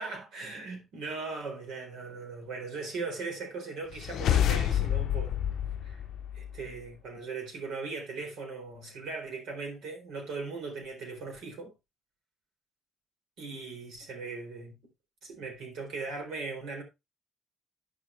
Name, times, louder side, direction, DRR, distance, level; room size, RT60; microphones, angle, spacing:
voice 1, 0.0-5.4 5.8-6.0 6.3-11.7 13.4-14.8 15.2-16.8, right 4 dB, 85° right, 4.0 m, -39 dB
sound 1, 3.9-6.7, left 10 dB, 75° left, 0.5 m, -28 dB
9.7 x 6.5 x 3.2 m
cardioid pair, 90°, 0 cm